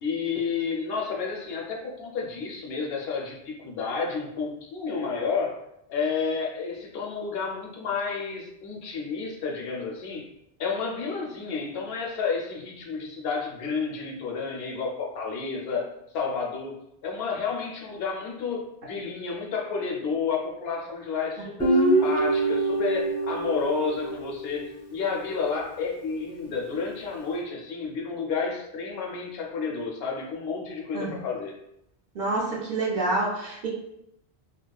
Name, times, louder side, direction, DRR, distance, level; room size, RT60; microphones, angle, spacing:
voice 1, 0.0-5.6 5.9-10.3 10.6-15.9 16.1-16.8 17.0-31.5, left 5 dB, 70° left, 0 dB, 0.8 m, -31 dB
Guitar, 21.6-24.9, right 2 dB, 10° left, 0.6 m, -25 dB
voice 2, 32.2-33.7, right 2 dB, 55° right, -3 dB, 0.6 m, -27 dB
2.8 x 2.0 x 2.2 m, 0.79 s
omnidirectional pair, 1.1 m